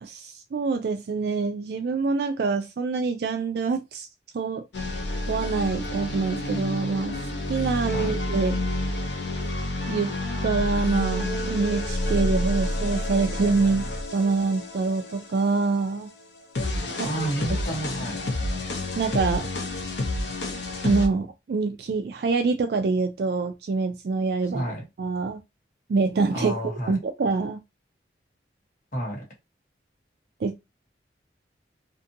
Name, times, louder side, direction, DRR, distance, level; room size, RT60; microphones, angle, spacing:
voice 1, 0.0-4.1 4.3-4.6 5.3-7.2 7.5-8.6 9.9-10.1 10.4-16.1 17.0-17.1 17.5-17.6 19.0-19.5 20.8-24.6 25.0-25.4 25.9-27.6 30.4-30.6, right 4 dB, 60° right, 0.3 m, -25 dB
sound 1, 4.7-21.1, left 1 dB, 75° left, 0.6 m, -29 dB
voice 2, 17.0-18.2 24.5-24.9 26.3-27.0 28.9-29.3, right 1 dB, 45° left, 1.1 m, -31 dB
2.6 x 2.5 x 2.6 m
head